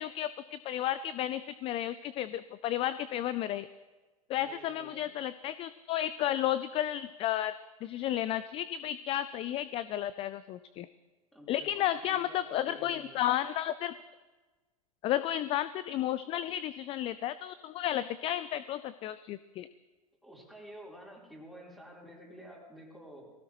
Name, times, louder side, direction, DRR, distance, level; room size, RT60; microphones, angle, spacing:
voice 1, 0.0-3.7 4.3-7.5 7.8-10.9 11.5-13.9 15.0-19.7, left 12 dB, 30° left, 15 dB, 0.4 m, -33 dB
voice 2, 4.3-5.0 11.3-13.2 20.2-23.3, right 1 dB, ahead, -3 dB, 3.7 m, -50 dB
19.5 x 16.5 x 3.0 m, 1.3 s
hypercardioid pair, 100°, 20 cm